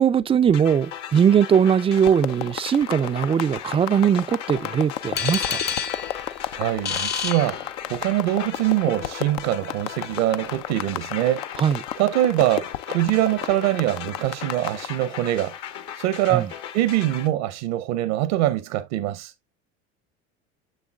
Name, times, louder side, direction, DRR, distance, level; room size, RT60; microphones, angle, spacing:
voice 1, 0.0-5.6 11.6-11.8 16.3-16.5, right 8 dB, 15° right, 0.3 m, -20 dB
sound 1, 0.5-17.3, left 9 dB, 55° left, 1.0 m, -38 dB
sound 2, 1.9-14.9, left 13 dB, 75° left, 0.6 m, -33 dB
sound 3, 5.2-8.2, left 7 dB, 30° left, 0.6 m, -29 dB
voice 2, 6.5-11.6 12.0-15.5 16.0-19.3, right 14 dB, 70° right, 0.8 m, -24 dB
6.7 x 6.4 x 2.3 m
hypercardioid pair, 80°, 35 cm